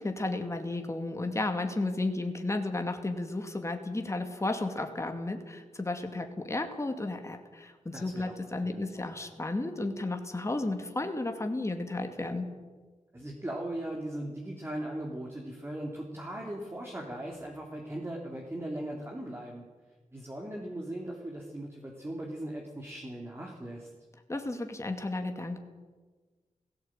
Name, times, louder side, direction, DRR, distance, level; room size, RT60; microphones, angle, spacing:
voice 1, 0.0-12.5 24.3-25.6, left 2 dB, 20° left, 5 dB, 2.5 m, -33 dB
voice 2, 7.9-8.3 8.6-9.3 13.1-19.6 20.1-23.9, right 1 dB, 20° right, -1 dB, 3.3 m, -39 dB
17.0 x 16.5 x 9.1 m, 1.4 s
wide cardioid pair, 85°, 13 cm